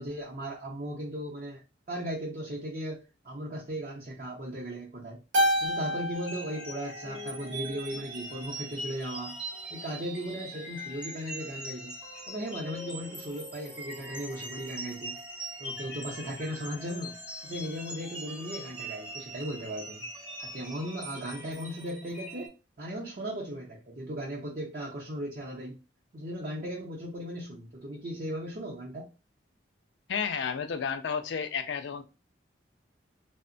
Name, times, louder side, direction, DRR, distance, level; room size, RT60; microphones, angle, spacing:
voice 1, 0.0-1.6 1.9-5.2 5.6-9.4 9.7-11.9 12.3-15.2 15.6-17.2 17.4-20.1 20.4-22.5 22.8-25.8 26.1-29.1, equal, 45° right, 0.6 m, -37 dB
Keyboard (musical), 5.3-7.9, equal, 90° right, 0.8 m, -30 dB
sound 1, 6.1-22.5, right 1 dB, 5° right, 0.6 m, -42 dB
voice 2, 30.1-32.0, left 6 dB, 70° left, 0.4 m, -31 dB
2.8 x 2.1 x 2.5 m
head